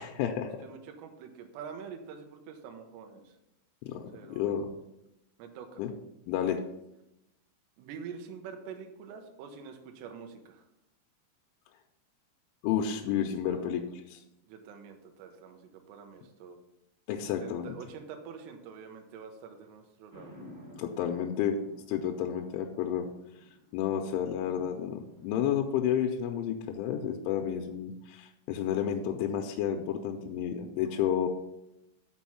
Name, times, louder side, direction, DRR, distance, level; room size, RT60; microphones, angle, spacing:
voice 1, 0.0-0.6 3.8-4.7 5.8-5.9 6.3-6.6 12.6-13.8 14.1-14.2 17.1-17.7 20.8-21.6 21.9-23.1 23.7-31.3, left 9 dB, 85° left, 3 dB, 3.0 m, -31 dB
voice 2, 0.6-3.4 4.1-4.6 5.4-5.8 7.8-10.7 13.5-13.7 14.5-16.6 17.4-20.3, right 6 dB, 75° right, 4 dB, 2.7 m, -46 dB
sound 1, 20.1-25.4, left 1 dB, 10° right, 1.4 m, -53 dB
6.3 x 6.1 x 5.7 m, 0.88 s
omnidirectional pair, 5.7 m